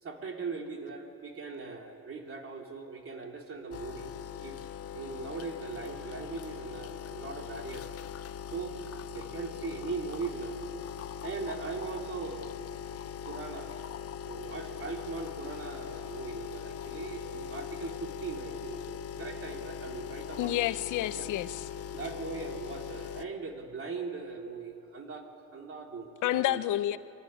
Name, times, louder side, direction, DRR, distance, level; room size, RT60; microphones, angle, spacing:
voice 1, 0.0-4.1 4.4-4.6 4.9-7.9 8.5-8.8 9.1-10.6 11.2-12.6 13.2-13.7 14.3-20.5 21.1-21.2 21.9-25.3 25.5-26.6, right 4 dB, 45° right, 2 dB, 3.1 m, -40 dB
sound 1, 3.7-23.2, left 8 dB, 50° left, 0.7 m, -41 dB
voice 2, 20.4-21.7 26.2-27.0, left 14 dB, 90° left, 14 dB, 0.8 m, -29 dB
23.5 x 15.0 x 10.0 m, 2.5 s
cardioid pair, 90°, 30 cm